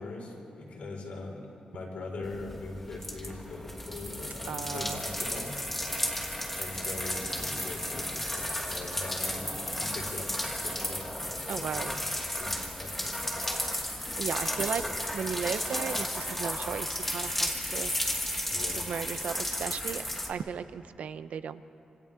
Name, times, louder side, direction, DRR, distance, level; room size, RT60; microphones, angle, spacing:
voice 1, 0.0-5.5 6.6-9.5 9.8-13.2 18.5-18.9, left 3 dB, 75° left, -1 dB, 4.9 m, -41 dB
sound 1, 2.2-20.3, left 1 dB, 10° left, 2.2 m, -33 dB
voice 2, 4.5-5.0 11.5-11.9 14.2-14.8 15.1-17.9 18.8-21.6, right 7 dB, 80° right, 12 dB, 0.7 m, -35 dB
27.5 x 26.5 x 3.7 m, 2.9 s
wide cardioid pair, 145°, 2 cm